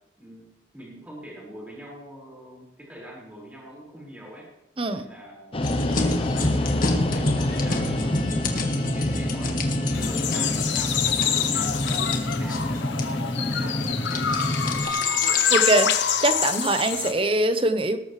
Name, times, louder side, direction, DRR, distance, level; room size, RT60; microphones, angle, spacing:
voice 1, 0.2-4.5 4.9-8.4 8.8-12.8 13.2-14.3, right 1 dB, 10° right, -4 dB, 5.3 m, -43 dB
sound 1, 5.5-14.9, left 1 dB, 30° left, 0.8 m, -28 dB
sound 2, 5.6-15.6, left 2 dB, 45° left, 1.8 m, -29 dB
sound 3, 9.9-17.1, left 8 dB, 75° left, 1.1 m, -26 dB
voice 2, 15.5-15.9 16.2-18.0, right 2 dB, 30° right, 9 dB, 1.0 m, -22 dB
20.0 x 12.5 x 3.3 m, 0.92 s
head